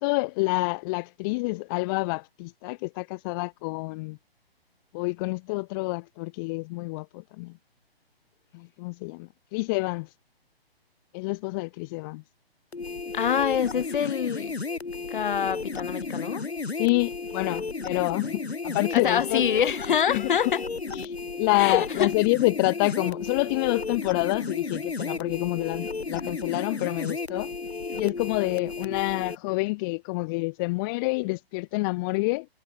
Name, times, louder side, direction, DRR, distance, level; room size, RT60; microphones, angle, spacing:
voice 1, 0.0-4.2 4.9-7.5 8.5-10.1 11.1-12.2 16.8-19.5 20.1-20.3 20.9-27.5 27.9-32.5, left 26 dB, 20° left, 0.9 m, -28 dB
sound 1, 12.7-29.4, left 4 dB, 80° left, 3.2 m, -33 dB
voice 2, 13.1-14.6 15.1-16.4 18.9-20.6 21.6-22.1, left 8 dB, 55° left, 2.2 m, -25 dB
figure-of-eight pair, 135°, 31 cm